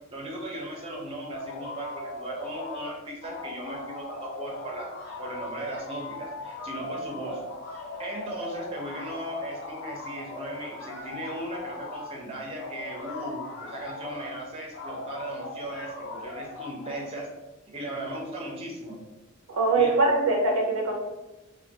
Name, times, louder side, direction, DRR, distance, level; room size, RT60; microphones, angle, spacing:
voice 1, 0.1-4.9 5.2-7.4 8.0-17.3 17.7-19.0 19.7-20.0, right 1 dB, 30° right, -2 dB, 0.5 m, -37 dB
sound 1, 1.3-2.9 3.2-12.1 12.6-14.3 14.7-17.1, left 2 dB, 70° left, 0.5 m, -39 dB
voice 2, 19.5-21.1, right 3 dB, 80° right, 2 dB, 0.5 m, -23 dB
2.2 x 2.2 x 2.7 m, 1.0 s
head